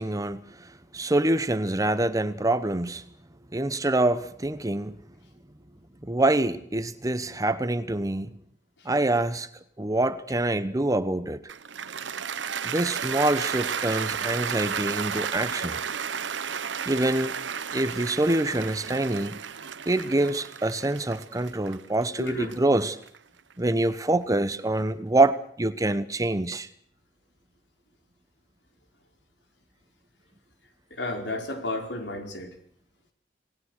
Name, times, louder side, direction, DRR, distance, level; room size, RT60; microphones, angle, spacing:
voice 1, 0.0-3.0 3.5-5.0 6.0-8.3 8.8-9.5 9.8-11.4 12.6-15.8 16.9-17.3 17.7-19.4 19.9-23.0 23.6-26.7, right 2 dB, 20° right, 13 dB, 0.9 m, -25 dB
Cheering / Applause, 11.5-23.7, right 7 dB, 85° right, 1.0 m, -33 dB
voice 2, 22.2-22.5 30.9-32.5, left 2 dB, 70° left, 4 dB, 4.8 m, -32 dB
27.5 x 19.5 x 6.5 m, 0.63 s
head